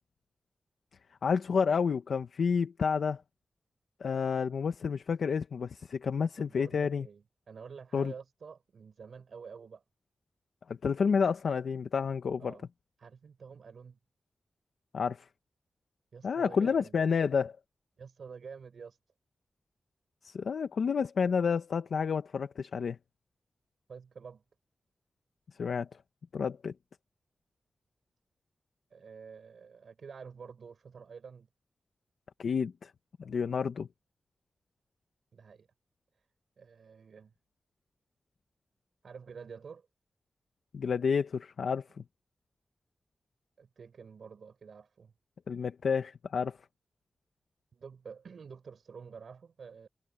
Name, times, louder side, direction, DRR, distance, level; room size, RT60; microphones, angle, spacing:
voice 1, 1.2-3.2 4.0-7.1 7.9-8.1 10.7-12.5 14.9-15.3 16.2-17.5 20.2-23.0 25.6-25.9 26.3-26.7 32.4-32.9 33.2-33.9 40.7-41.8 45.5-46.6, left 6 dB, 85° left, 1.1 m, -30 dB
voice 2, 6.4-9.8 12.4-12.7 13.0-14.0 16.1-17.1 18.0-19.0 23.9-24.4 28.9-31.5 35.3-35.7 36.2-36.3 36.6-37.3 39.0-39.9 43.6-45.1 47.7-49.9, right 6 dB, 75° right, 5.0 m, -49 dB
wide cardioid pair, 110°, 0 cm